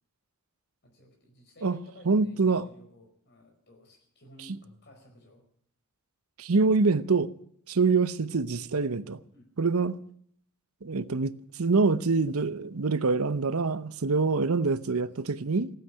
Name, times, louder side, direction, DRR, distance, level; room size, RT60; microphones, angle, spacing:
voice 1, 0.8-5.4 9.3-9.5 14.7-15.3, left 1 dB, 50° left, 4.9 m, -55 dB
voice 2, 1.6-2.6 6.4-7.3 7.7-9.2 9.6-10.0 10.8-15.7, right 4 dB, 85° right, 0.8 m, -25 dB
16.0 x 9.1 x 10.0 m
head